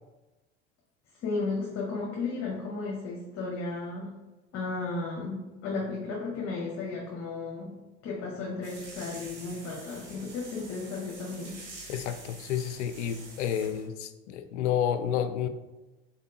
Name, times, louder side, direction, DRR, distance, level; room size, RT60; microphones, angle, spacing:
voice 1, 1.2-4.1 4.5-7.7 8.0-11.6, left 3 dB, 45° left, -4 dB, 1.2 m, -34 dB
sound 1, 8.6-13.9, right 3 dB, 85° right, 1.4 m, -47 dB
voice 2, 11.9-15.5, left 9 dB, 80° left, 10 dB, 0.5 m, -30 dB
4.1 x 3.5 x 2.8 m, 1.1 s
hypercardioid pair, 80°, 35 cm